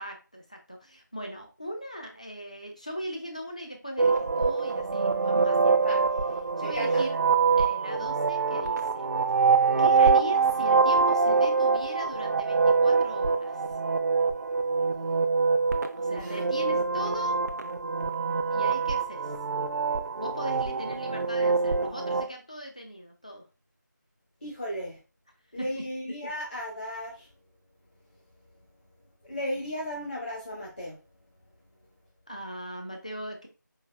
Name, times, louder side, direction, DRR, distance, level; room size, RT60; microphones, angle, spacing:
voice 1, 0.0-5.9 6.6-7.2 7.6-9.1 9.8-13.6 15.9-17.4 18.5-19.3 20.1-23.4 25.6-25.8 32.3-33.5, equal, 20° left, 3 dB, 0.4 m, -39 dB
sound 1, 4.0-22.3, right 4 dB, 60° right, 0.5 m, -25 dB
voice 2, 6.6-7.0 16.2-16.4 24.4-25.0 25.5-27.3 29.3-31.0, equal, 40° left, -3 dB, 0.8 m, -35 dB
4.6 x 2.5 x 2.2 m, 0.32 s
figure-of-eight pair, 170°, 10 cm